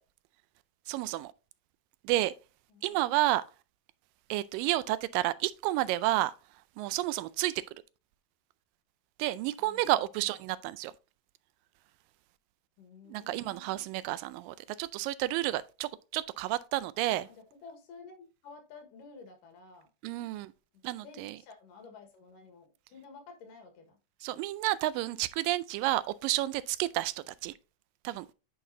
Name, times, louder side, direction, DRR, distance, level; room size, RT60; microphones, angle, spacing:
voice 1, 0.9-1.3 2.0-2.3 2.8-3.4 4.3-6.3 6.8-7.5 9.2-10.9 13.1-17.3 20.0-20.5 20.8-21.4 24.2-27.5 28.0-28.3, right 16 dB, 85° right, 2.2 m, -30 dB
voice 2, 2.7-3.1 9.6-10.4 12.8-13.9 17.2-19.9 20.7-24.0, left 4 dB, 75° left, 3.1 m, -52 dB
9.2 x 5.9 x 2.7 m
omnidirectional pair, 3.9 m